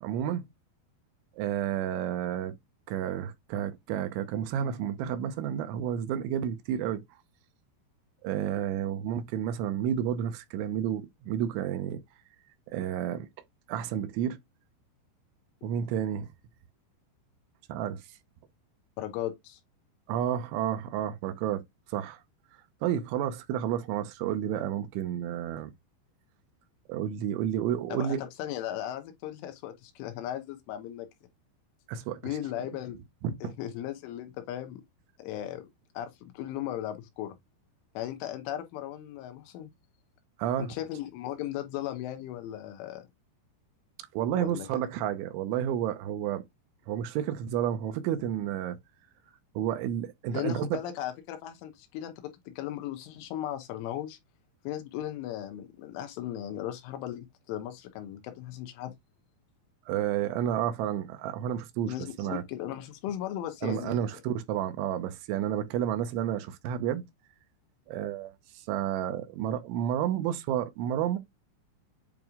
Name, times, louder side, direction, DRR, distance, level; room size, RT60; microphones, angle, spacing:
voice 1, 0.0-0.4 1.4-2.5 2.9-7.0 8.2-12.0 12.7-13.3 13.7-14.4 15.6-16.3 17.7-18.0 20.1-21.6 21.9-22.2 22.8-25.7 26.9-28.2 31.9-32.2 33.2-33.5 40.4-40.7 44.1-46.4 46.9-48.8 49.6-50.8 59.9-62.4 63.6-67.0 67.9-71.2, right 10 dB, 85° right, 3.2 m, -31 dB
voice 2, 19.0-19.6 27.9-31.1 32.2-33.0 33.4-34.8 35.2-35.7 36.0-37.4 38.0-39.7 40.6-43.1 44.4-44.8 50.3-54.2 54.7-58.9 61.9-64.1, left 12 dB, 85° left, 3.5 m, -37 dB
8.9 x 3.0 x 3.6 m
omnidirectional pair, 5.5 m